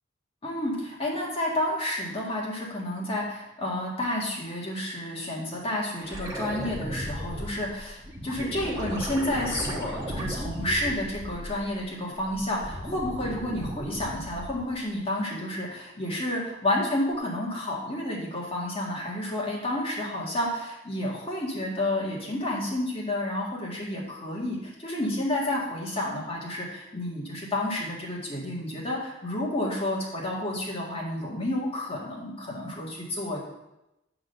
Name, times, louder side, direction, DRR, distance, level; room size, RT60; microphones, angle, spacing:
voice 1, 0.4-33.4, left 1 dB, 30° left, -4 dB, 1.9 m, -30 dB
sound 1, 6.0-11.8 12.2-14.7 17.1-17.2, right 1 dB, 20° right, 1.1 m, -36 dB
8.5 x 3.9 x 6.6 m, 0.92 s
head